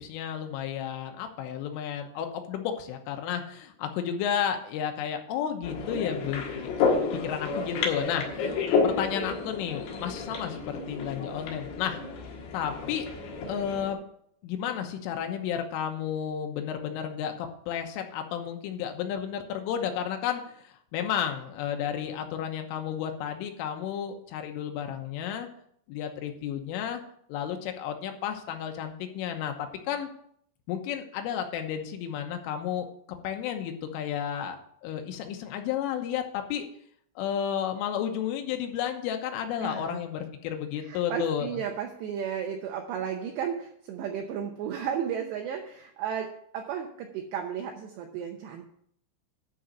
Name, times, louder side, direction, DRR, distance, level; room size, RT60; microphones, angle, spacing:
voice 1, 0.0-6.7 7.2-12.0 12.5-13.1 13.5-14.0 14.4-25.5 25.9-27.0 27.3-30.1 30.7-32.9 33.2-34.6 34.8-36.7 37.2-41.6, left 9 dB, 85° left, 5 dB, 3.6 m, -32 dB
sound 1, 5.6-13.9, left 4 dB, 65° left, 3.2 m, -30 dB
voice 2, 39.6-40.0 40.8-48.7, right 8 dB, 75° right, 3 dB, 2.6 m, -34 dB
11.5 x 5.1 x 6.8 m, 0.67 s
omnidirectional pair, 5.7 m